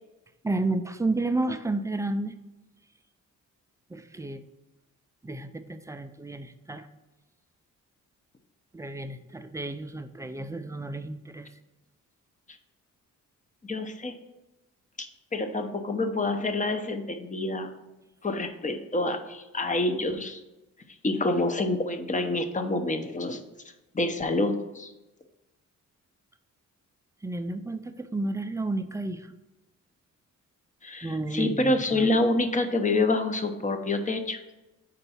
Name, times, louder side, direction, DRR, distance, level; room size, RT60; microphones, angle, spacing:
voice 1, 0.4-2.3 3.9-4.4 5.2-6.9 8.7-11.5 27.2-29.3 31.0-32.1, right 2 dB, 10° right, 9 dB, 0.4 m, -31 dB
voice 2, 13.6-14.1 15.0-17.7 18.2-20.4 21.0-23.4 23.9-24.9 30.8-34.4, left 2 dB, 25° left, 7 dB, 0.7 m, -27 dB
4.6 x 3.9 x 5.6 m, 1.0 s
cardioid pair, 85°, 32 cm